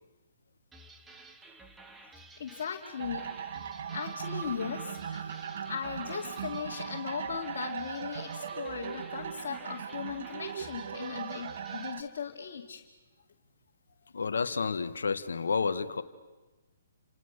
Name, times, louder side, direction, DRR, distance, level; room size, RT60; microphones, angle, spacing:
sound 1, 0.7-12.0, right 2 dB, 10° right, 1.6 m, -53 dB
voice 1, 2.0-3.3 3.6-12.8, left 7 dB, 55° left, -1 dB, 2.6 m, -38 dB
sound 2, 3.0-12.0, right 7 dB, 55° right, 1.5 m, -39 dB
voice 2, 14.1-16.0, left 5 dB, 75° left, 9 dB, 1.4 m, -30 dB
29.5 x 27.5 x 6.7 m, 1.2 s
figure-of-eight pair, 135°, 0 cm